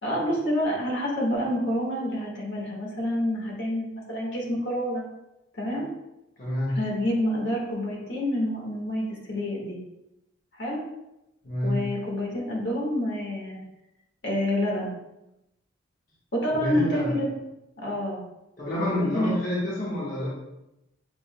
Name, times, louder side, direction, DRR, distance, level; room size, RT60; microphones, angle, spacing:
voice 1, 0.0-5.0 5.5-5.9 6.7-9.8 10.5-10.8 11.6-13.6 14.2-14.9 16.3-17.3 17.8-18.2 18.9-19.4, left 1 dB, 65° left, -3 dB, 1.5 m, -28 dB
voice 2, 6.4-6.8 11.4-11.9 16.5-17.2 18.6-20.3, left 1 dB, 45° left, -8 dB, 1.2 m, -28 dB
6.9 x 3.4 x 2.2 m, 0.89 s
head